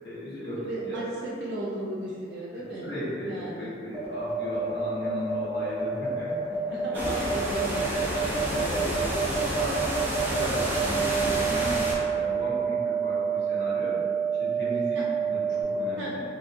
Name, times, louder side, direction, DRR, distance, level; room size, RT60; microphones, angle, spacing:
voice 1, 0.0-1.0 2.5-6.3 6.6-7.3 7.8-11.8 12.0-14.0 14.4-16.2, equal, 65° left, -12 dB, 1.0 m, -36 dB
voice 2, 0.5-2.9 3.3-3.7 6.7-7.6 14.9-15.0 16.0-16.1, right 1 dB, 80° right, -7 dB, 0.5 m, -35 dB
sound 1, 3.9-15.6, right 7 dB, 10° left, 0.9 m, -28 dB
sound 2, 6.9-12.0, equal, 10° right, 0.4 m, -30 dB
2.7 x 2.5 x 2.6 m, 2.4 s
head